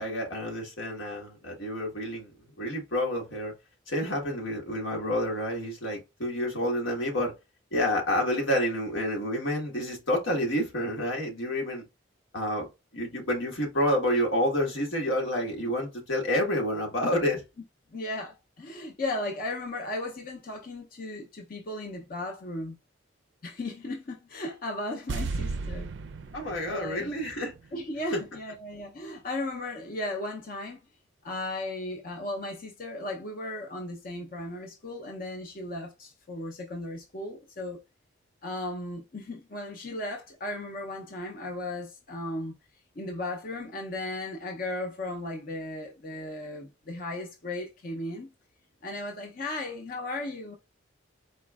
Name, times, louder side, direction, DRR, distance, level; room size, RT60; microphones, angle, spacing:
voice 1, 0.0-2.3 2.6-3.5 3.9-7.3 7.7-11.8 12.3-12.7 12.9-17.4 26.3-27.5, equal, 85° left, 1.5 m, -29 dB
voice 2, 17.9-22.7 23.4-25.9 26.7-27.2 27.7-30.8 31.2-37.8 38.4-42.5 43.0-48.3 48.8-50.6, left 1 dB, 45° left, 0.6 m, -36 dB
sound 1, 25.1-28.3 28.5-28.6, right 4 dB, 65° right, 0.4 m, -36 dB
4.3 x 2.9 x 2.3 m
head